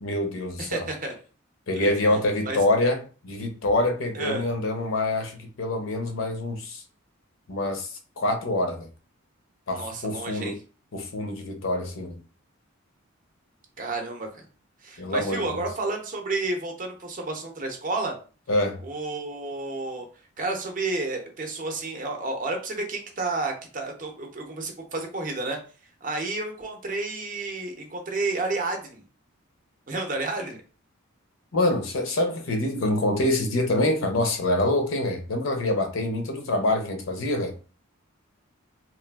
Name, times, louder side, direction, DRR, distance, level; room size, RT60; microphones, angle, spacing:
voice 1, 0.0-0.9 1.7-6.8 7.5-8.9 9.7-10.6 10.9-12.2 15.0-15.6 18.5-18.8 31.5-37.5, left 1 dB, 65° left, 0.6 m, -26 dB
voice 2, 0.6-1.2 1.7-2.2 2.4-2.6 4.1-4.4 9.7-10.5 13.8-14.4 14.8-18.2 18.8-20.0 20.4-25.6 26.0-29.0 29.9-30.6, right 3 dB, 40° right, 0.6 m, -31 dB
3.1 x 2.3 x 2.3 m
head